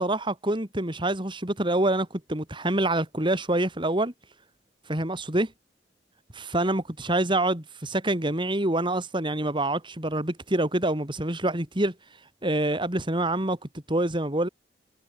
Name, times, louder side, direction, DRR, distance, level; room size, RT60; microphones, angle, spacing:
voice 1, 0.0-4.1 4.9-5.5 6.3-11.9 12.4-13.6 13.9-14.5, right 1 dB, 25° right, 3.1 m, -26 dB
head